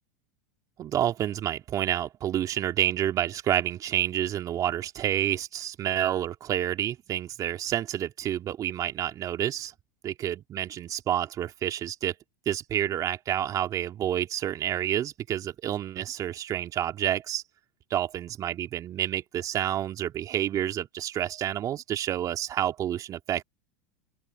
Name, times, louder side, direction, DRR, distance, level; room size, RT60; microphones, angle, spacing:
voice 1, 0.8-9.7 10.0-12.1 12.5-17.4 17.9-23.4, right 11 dB, 40° right, 2.6 m, -29 dB
open air
hypercardioid pair, 100°, 9 cm